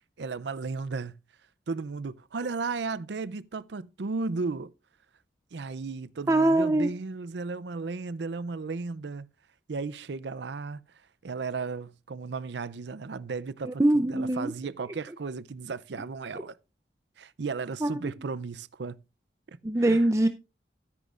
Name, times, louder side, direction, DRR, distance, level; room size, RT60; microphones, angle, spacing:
voice 1, 0.2-1.2 1.7-4.7 5.5-9.3 9.7-10.8 11.2-16.6 17.2-19.0 19.5-20.1, right 4 dB, 70° right, 0.5 m, -35 dB
voice 2, 6.3-6.9 13.6-14.5 17.8-18.1 19.6-20.3, right 1 dB, 15° right, 0.5 m, -23 dB
13.5 x 10.5 x 2.5 m
head